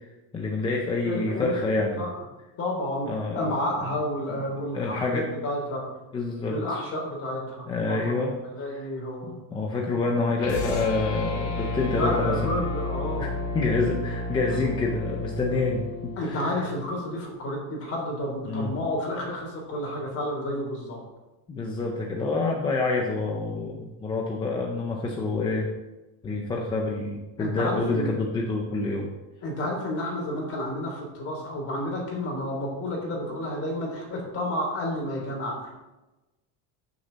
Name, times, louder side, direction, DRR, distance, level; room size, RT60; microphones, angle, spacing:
voice 1, 0.3-2.0 3.1-3.5 4.5-5.3 6.1-6.6 7.7-8.4 8.7-8.9 9.2-12.5 13.2-16.6 18.4-18.7 21.5-25.7 26.2-29.1, left 3 dB, 10° left, -1 dB, 0.4 m, -27 dB
voice 2, 1.0-2.1 2.6-5.8 6.4-9.3 11.9-13.3 14.6-14.7 16.2-21.0 27.4-28.1 29.4-35.7, left 1 dB, 25° left, -1 dB, 3.4 m, -31 dB
sound 1, 10.4-16.8, left 2 dB, 75° left, 2.7 m, -32 dB
14.0 x 6.7 x 4.0 m, 1.1 s
cardioid pair, 180°, 49 cm